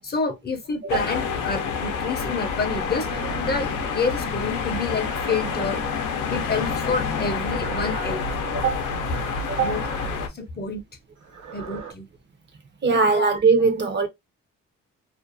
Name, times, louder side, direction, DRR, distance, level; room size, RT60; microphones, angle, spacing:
voice 1, 0.0-3.1 3.4-5.8 6.3-8.2 9.6-9.8 10.3-10.8 11.5-12.1 13.2-13.3, left 4 dB, 30° left, 0.6 m, -28 dB
sound 1, 0.9-10.3, left 5 dB, 85° left, 0.6 m, -28 dB
sound 2, 2.6-4.3 5.0-5.9 6.5-7.0 7.4-8.4 9.1-10.1 11.2-11.9, right 5 dB, 65° right, 1.1 m, -39 dB
voice 2, 8.5-9.1 9.5-9.7 12.8-14.1, right 4 dB, 35° right, 0.6 m, -21 dB
2.5 x 2.2 x 2.5 m
cardioid pair, 90°, 30 cm